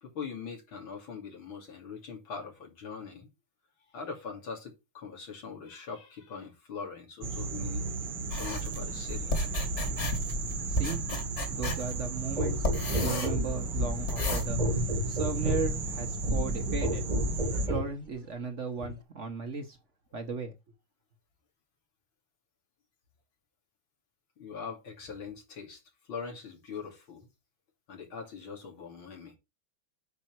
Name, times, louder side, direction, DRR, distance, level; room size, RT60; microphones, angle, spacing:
voice 1, 0.0-3.3 3.9-7.8 8.3-9.3 24.4-27.3 27.9-29.4, left 5 dB, 85° left, 3.5 m, -42 dB
sound 1, 7.2-17.7, right 4 dB, 60° right, 2.0 m, -35 dB
sound 2, 8.3-14.5, left 1 dB, 35° left, 2.2 m, -33 dB
voice 2, 10.7-11.0 11.5-17.0 17.7-19.8 20.1-20.5, right 4 dB, 45° right, 1.2 m, -36 dB
sound 3, 12.4-17.9 18.8-19.0, equal, 25° right, 1.3 m, -31 dB
8.8 x 5.5 x 4.6 m
omnidirectional pair, 2.1 m